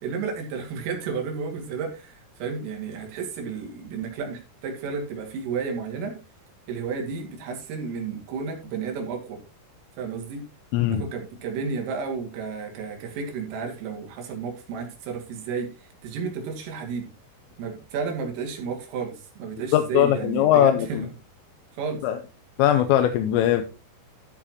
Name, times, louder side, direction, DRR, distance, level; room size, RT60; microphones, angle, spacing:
voice 1, 0.0-6.2 6.7-9.4 10.0-10.4 10.9-17.1 17.6-21.1 21.7-22.0, right 5 dB, 85° right, 2 dB, 4.9 m, -32 dB
voice 2, 19.7-21.1 22.0-22.2 22.6-23.6, left 11 dB, 85° left, 7 dB, 3.4 m, -20 dB
13.5 x 7.4 x 2.9 m, 0.31 s
omnidirectional pair, 5.8 m